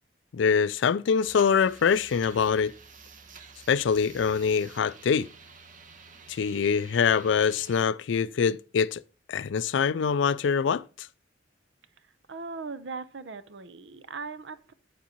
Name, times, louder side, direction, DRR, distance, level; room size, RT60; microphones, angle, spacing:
voice 1, 0.3-2.7 3.7-5.3 6.3-9.0 9.3-10.8, left 6 dB, 70° left, 0.4 m, -24 dB
sound 1, 1.2-7.8, right 5 dB, 45° right, 1.0 m, -50 dB
voice 2, 12.3-14.7, right 4 dB, 70° right, 0.7 m, -39 dB
8.2 x 7.3 x 2.9 m
head